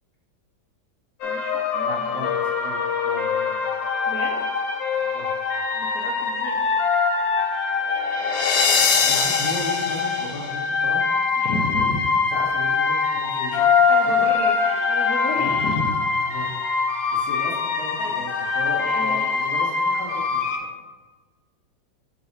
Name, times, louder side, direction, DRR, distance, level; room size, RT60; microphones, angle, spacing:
sound 1, 1.2-20.6, left 5 dB, 85° left, 1.6 m, -23 dB
voice 1, 1.2-2.0 4.1-4.4 5.7-6.6 11.4-12.0 13.5-15.9 18.0-18.2 18.8-19.3, left 3 dB, 60° left, -3 dB, 1.1 m, -32 dB
voice 2, 1.8-3.5 5.0-5.3 8.7-11.0 12.3-13.7 14.1-14.3 15.4-15.5 16.3-16.5 17.1-20.6, left 1 dB, 15° right, -8 dB, 1.8 m, -35 dB
5.7 x 3.2 x 5.5 m, 1.3 s
omnidirectional pair, 2.0 m